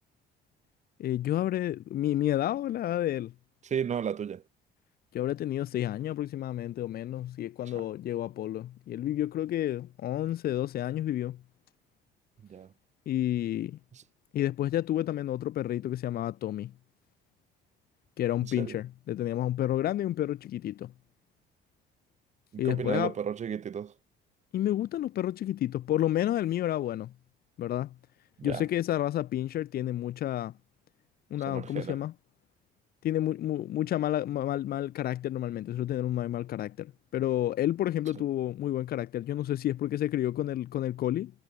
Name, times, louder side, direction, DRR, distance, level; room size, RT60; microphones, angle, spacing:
voice 1, 1.0-3.3 5.1-11.4 13.1-13.8 14.3-16.7 18.2-20.9 22.6-23.1 24.5-27.1 27.6-27.9 28.4-30.5 31.3-32.1 33.0-41.3, left 12 dB, 65° left, 3.0 m, -30 dB
voice 2, 3.6-4.4 12.5-12.7 18.4-18.8 22.5-23.9 28.4-28.6 31.5-32.0, right 8 dB, 45° right, 3.3 m, -33 dB
cardioid pair, 110°, 17 cm